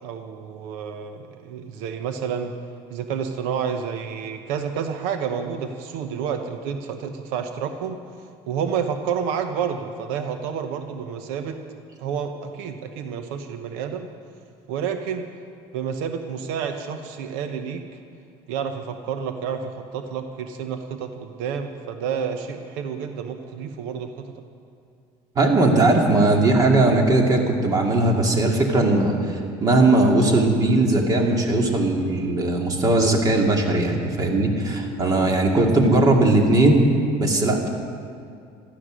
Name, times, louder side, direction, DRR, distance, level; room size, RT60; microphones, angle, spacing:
voice 1, 0.0-2.5 2.9-8.0 8.5-11.6 12.0-14.1 14.7-15.2 15.7-17.8 18.5-24.3, right 7 dB, 85° right, 7 dB, 1.0 m, -29 dB
voice 2, 25.4-36.9 37.2-37.7, right 2 dB, 30° right, 2 dB, 2.3 m, -19 dB
15.0 x 13.0 x 6.3 m, 2.4 s
cardioid pair, 130°, 12 cm